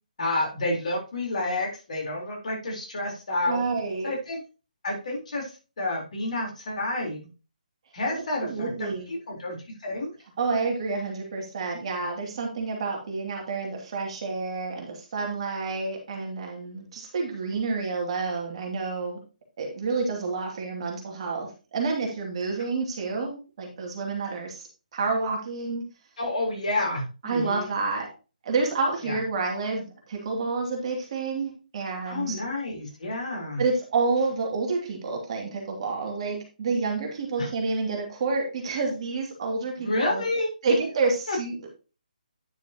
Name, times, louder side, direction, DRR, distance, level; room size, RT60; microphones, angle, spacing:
voice 1, 0.2-3.6 4.0-4.4 4.8-7.3 7.9-9.6 9.8-10.1 26.2-27.7 29.0-29.2 32.1-33.6 37.4-37.5 39.8-40.5 41.3-41.4, left 2 dB, 50° left, -1 dB, 4.1 m, -29 dB
voice 2, 3.5-4.1 8.1-9.1 10.4-19.2 19.6-25.9 27.2-28.1 28.4-32.3 33.6-40.2 40.6-41.8, right 4 dB, 40° right, 1 dB, 2.7 m, -29 dB
9.8 x 7.0 x 3.0 m, 0.32 s
figure-of-eight pair, 140°, 5 cm